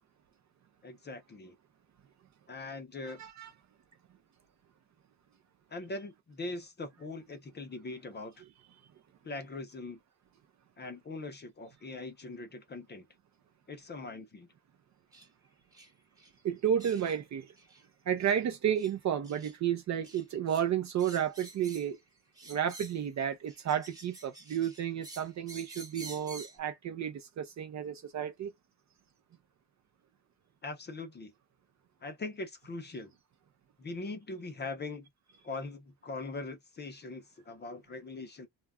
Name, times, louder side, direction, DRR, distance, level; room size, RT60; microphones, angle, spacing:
voice 1, 0.8-1.6 2.5-3.2 5.7-8.4 9.2-10.0 10.8-13.1 13.7-14.5 30.6-31.3 32.0-33.1 33.8-35.1 35.4-38.5, left 3 dB, 25° left, 0.5 m, -41 dB
voice 2, 3.0-3.5 16.4-17.5 18.1-22.0 22.5-28.5, right 9 dB, 40° right, 0.4 m, -32 dB
sound 1, 15.1-15.3 15.7-15.9 16.2-16.3 16.8-17.2 17.6-17.8 18.2-18.4 18.7-18.9 19.2-19.5 20.0-20.6 21.0-22.0 22.3-23.1 23.5-26.6, right 2 dB, 10° right, 0.9 m, -50 dB
2.3 x 2.2 x 3.4 m
cardioid pair, 170°, 45 cm